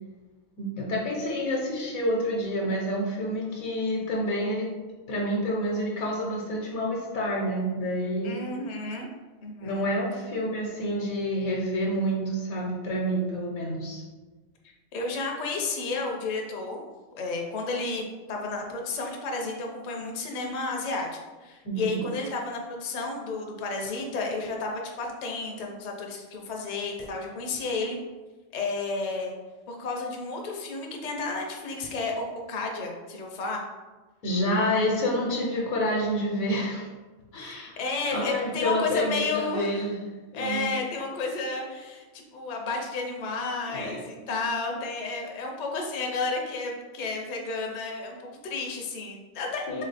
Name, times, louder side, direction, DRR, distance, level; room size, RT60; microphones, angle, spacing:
voice 1, 0.6-4.6 5.1-8.4 9.6-14.0 21.6-22.0 34.2-36.9 37.3-37.8 38.1-40.0 40.3-40.7 43.7-44.0 49.7-49.8, equal, 80° left, -3 dB, 1.3 m, -28 dB
voice 2, 8.2-9.1 9.4-9.9 14.9-16.8 17.1-21.1 21.4-28.0 28.5-29.3 29.7-33.6 37.4-39.8 40.3-49.8, left 3 dB, 45° left, 1 dB, 0.6 m, -32 dB
3.5 x 3.1 x 4.0 m, 1.3 s
omnidirectional pair, 1.4 m